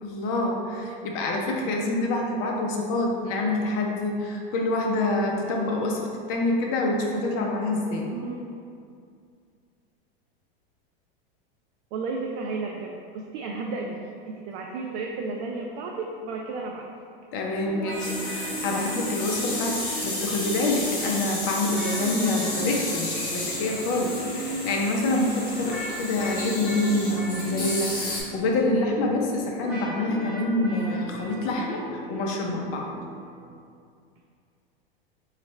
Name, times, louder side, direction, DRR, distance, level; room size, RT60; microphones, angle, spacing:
voice 1, 0.0-8.1 17.3-32.9, left 2 dB, 45° left, 0 dB, 0.7 m, -26 dB
voice 2, 8.1-8.5 11.9-14.0 14.3-16.9 23.6-23.7, right 3 dB, 50° right, 0 dB, 0.4 m, -33 dB
sound 1, 17.7-33.6, right 1 dB, 5° right, 1.0 m, -39 dB
sound 2, 17.9-28.2, left 1 dB, 30° left, 1.1 m, -32 dB
3.9 x 2.4 x 3.2 m, 2.3 s
hypercardioid pair, 105°, 29 cm